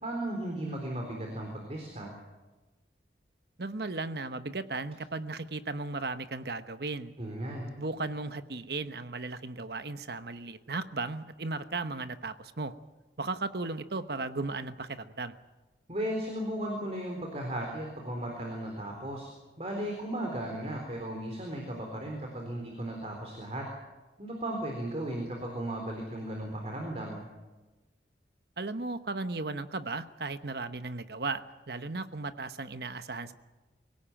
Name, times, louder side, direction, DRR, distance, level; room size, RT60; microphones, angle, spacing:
voice 1, 0.0-2.1 7.2-7.7 15.9-19.3 19.6-23.6 24.2-27.3, right 1 dB, 35° right, 1 dB, 3.8 m, -36 dB
voice 2, 3.6-7.1 7.8-12.7 13.2-15.3 28.6-33.3, right 3 dB, 65° right, 11 dB, 1.1 m, -36 dB
24.0 x 17.5 x 8.9 m, 1.2 s
head